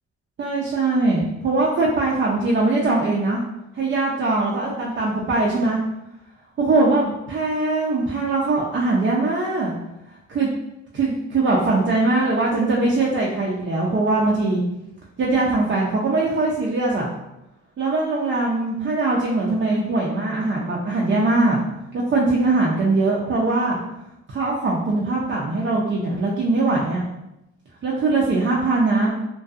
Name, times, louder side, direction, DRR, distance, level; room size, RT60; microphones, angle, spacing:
voice 1, 0.4-3.4 3.7-5.8 6.6-9.7 10.3-10.5 10.9-14.6 15.2-17.1 17.8-21.6 21.9-23.8 24.3-27.1 27.8-29.1, right 2 dB, 40° right, -4 dB, 0.5 m, -21 dB
2.6 x 2.2 x 2.4 m, 0.89 s
cardioid pair, 90°, 30 cm